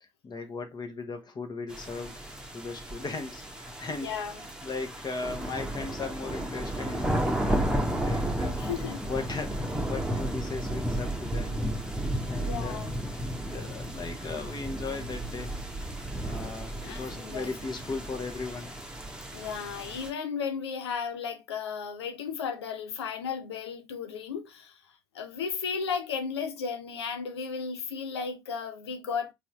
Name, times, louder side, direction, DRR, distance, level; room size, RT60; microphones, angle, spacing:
voice 1, 0.0-2.2 2.5-4.1 4.6-8.6 9.1-11.6 12.2-12.8 13.5-15.6 16.2-18.7, left 4 dB, 30° left, 1.2 m, -37 dB
sound 1, 1.7-20.1, right 1 dB, 5° right, 1.1 m, -33 dB
voice 2, 4.0-4.4 8.6-9.0 12.4-13.0 16.8-17.5 19.3-24.8 25.1-29.3, left 6 dB, 75° left, 0.7 m, -34 dB
4.2 x 3.7 x 3.1 m
figure-of-eight pair, 55°, 14 cm